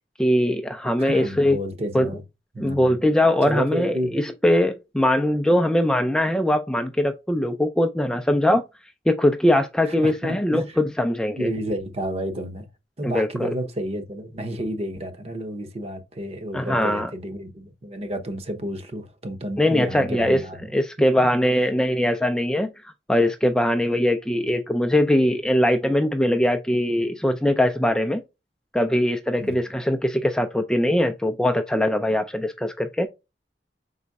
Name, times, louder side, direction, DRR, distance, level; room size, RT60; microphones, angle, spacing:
voice 1, 0.2-1.6 1.9-2.1 2.6-8.6 9.1-11.5 13.0-13.5 16.5-17.1 19.6-20.4 20.7-22.7 23.1-28.2 28.7-33.1, left 1 dB, 5° left, 0.4 m, -21 dB
voice 2, 1.0-2.2 2.5-3.0 3.4-4.2 9.8-10.8 11.4-12.7 13.0-20.7 21.0-21.3 29.4-29.6, equal, 35° right, 0.8 m, -31 dB
5.4 x 4.0 x 2.3 m
head